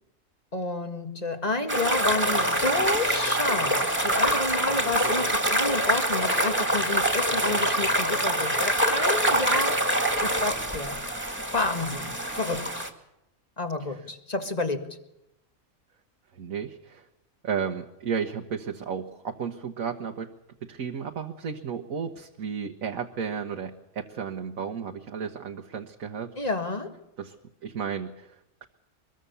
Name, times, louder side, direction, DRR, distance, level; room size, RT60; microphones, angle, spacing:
voice 1, 0.5-9.8 10.2-11.0 11.5-12.8 13.6-15.0 26.4-27.0, left 2 dB, 30° left, 1.9 m, -30 dB
sound 1, 1.7-12.9, right 1 dB, 10° right, 2.2 m, -25 dB
voice 2, 16.3-17.1 17.4-20.3 20.7-26.3 27.2-27.3 27.6-28.7, right 6 dB, 75° right, 1.7 m, -33 dB
24.0 x 22.0 x 7.0 m
omnidirectional pair, 1.4 m